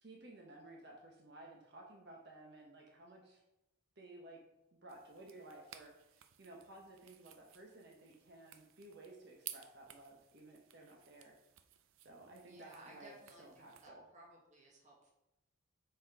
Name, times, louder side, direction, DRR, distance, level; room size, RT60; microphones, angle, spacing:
voice 1, 0.0-3.4 4.0-4.4 4.7-11.3 12.0-14.0, right 2 dB, 50° right, -1 dB, 1.2 m, -56 dB
sound 1, 4.9-13.9, right 11 dB, 75° right, 0.5 m, -56 dB
voice 2, 12.4-15.1, right 2 dB, 35° right, -2 dB, 1.7 m, -59 dB
6.2 x 5.8 x 4.8 m, 0.90 s
head